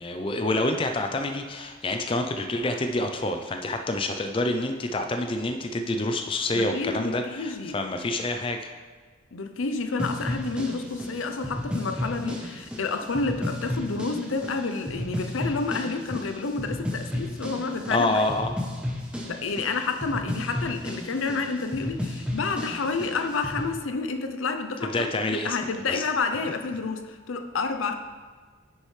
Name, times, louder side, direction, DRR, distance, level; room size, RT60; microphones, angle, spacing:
voice 1, 0.0-8.8 17.9-18.6 24.9-25.6 25.9-26.0, left 2 dB, 25° left, 5 dB, 0.4 m, -27 dB
voice 2, 6.5-7.8 9.3-18.2 19.3-27.9, left 4 dB, 80° left, 7 dB, 0.6 m, -29 dB
sound 1, 10.0-23.7, left 1 dB, 5° right, 0.8 m, -33 dB
9.8 x 6.4 x 3.2 m, 1.4 s
head